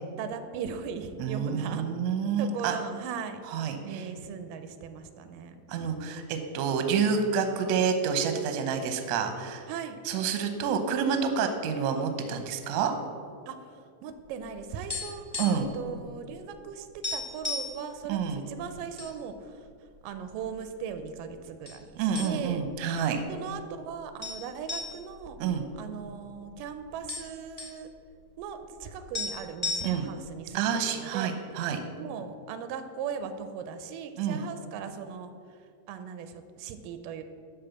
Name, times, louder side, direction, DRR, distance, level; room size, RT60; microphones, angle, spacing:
voice 1, 0.2-1.8 2.4-3.4 3.8-5.6 9.7-10.0 13.5-13.6 14.0-15.3 15.6-16.9 17.1-19.5 20.0-22.6 23.3-25.4 25.8-27.9 28.4-31.3 32.0-35.3 35.9-37.2, right 7 dB, 90° right, 9 dB, 2.3 m, -38 dB
voice 2, 1.2-2.8 3.5-4.1 5.7-9.6 10.0-12.9 15.4-15.7 18.1-18.4 22.0-23.2 25.4-25.6 29.8-30.0 30.5-31.8 34.2-34.4, right 6 dB, 75° right, 7 dB, 1.7 m, -28 dB
sound 1, 14.3-15.8 16.0-16.2 16.6-16.7 17.0-17.8 18.4-19.1 19.5-19.6 20.3-21.0 21.6-21.8 22.1-22.7 23.0-23.1 24.2-26.3 26.6-26.7 26.9-27.8 28.8-28.9 29.1-30.2, left 3 dB, 15° left, 1.5 m, -35 dB
12.0 x 3.9 x 7.0 m, 2.3 s
omnidirectional pair, 3.9 m